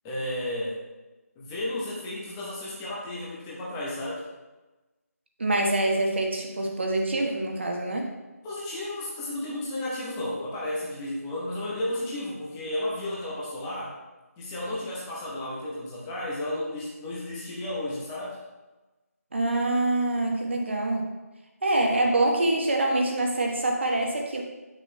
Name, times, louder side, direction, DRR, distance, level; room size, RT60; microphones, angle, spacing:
voice 1, 0.0-0.8 1.4-4.2 8.4-13.9 14.4-18.4, left 1 dB, 10° left, -6 dB, 0.9 m, -33 dB
voice 2, 5.4-8.1 19.3-21.1 21.6-24.4, right 2 dB, 45° right, 1 dB, 1.2 m, -25 dB
9.2 x 6.3 x 2.2 m, 1.1 s
figure-of-eight pair, 165°, 9 cm